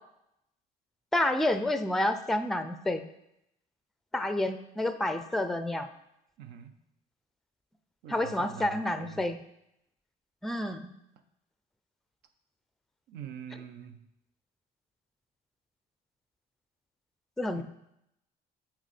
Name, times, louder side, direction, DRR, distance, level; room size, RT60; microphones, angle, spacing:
voice 1, 1.1-3.0 4.1-5.9 8.1-9.4 10.4-10.9 17.4-17.6, left 1 dB, ahead, 10 dB, 0.4 m, -29 dB
voice 2, 6.4-6.7 8.0-9.2 13.1-14.0 17.5-17.6, right 9 dB, 85° right, 9 dB, 0.7 m, -44 dB
6.1 x 4.6 x 4.2 m, 0.81 s
cardioid pair, 110°, 17 cm